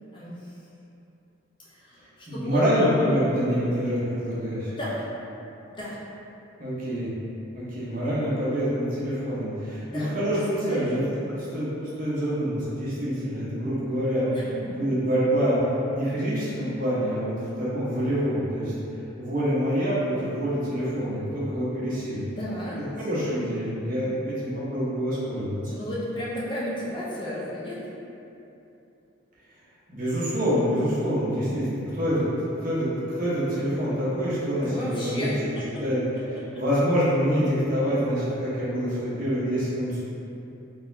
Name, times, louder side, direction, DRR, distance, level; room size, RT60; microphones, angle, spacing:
voice 1, 0.1-0.6 1.7-2.7 4.7-5.1 5.8-6.0 9.9-10.8 14.3-14.4 14.7-14.8 22.4-22.8 24.1-24.2 25.7-27.8 34.6-35.6, left 1 dB, 25° left, -7 dB, 0.5 m, -33 dB
voice 2, 2.3-4.7 6.6-7.1 7.5-11.7 12.0-14.3 14.7-15.6 15.9-18.7 19.2-22.2 23.0-25.7 29.9-32.3 32.6-32.9 33.2-35.3 35.8-36.0 36.5-40.0, equal, 40° right, -9 dB, 1.1 m, -26 dB
4.0 x 3.5 x 2.7 m, 2.8 s
head